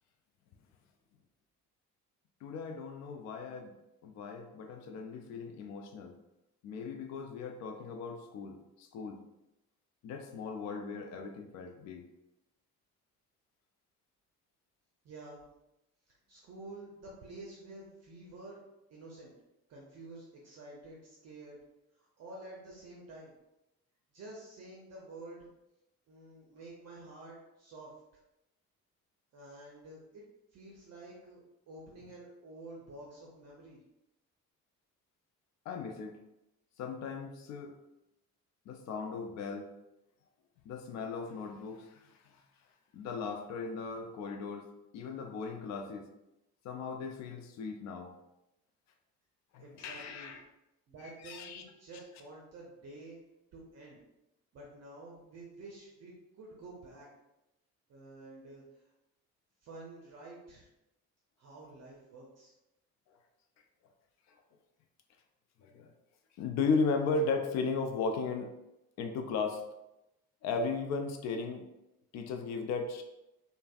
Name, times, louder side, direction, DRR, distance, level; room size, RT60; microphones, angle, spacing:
voice 1, 2.4-3.7 4.0-6.1 6.6-9.2 10.0-12.0 35.7-36.2 36.8-37.7 38.7-39.7 40.7-42.2 42.9-44.7 44.9-46.1 46.6-48.1 49.5-50.4 51.2-51.6 65.6-65.9 66.4-68.5 69.0-69.6 70.4-71.6 72.1-73.0, left 4 dB, 40° left, 5 dB, 0.4 m, -36 dB
voice 2, 15.0-15.4 16.3-18.6 18.9-19.3 19.7-21.6 22.0-23.3 24.1-25.5 26.1-27.9 29.3-30.2 30.5-33.8 49.6-50.3 50.9-53.2 53.5-54.0 54.5-57.1 57.9-58.9 59.6-60.7 61.4-62.5, right 2 dB, 35° right, -3 dB, 0.6 m, -50 dB
3.2 x 2.0 x 2.4 m, 0.92 s
figure-of-eight pair, 45°, 43 cm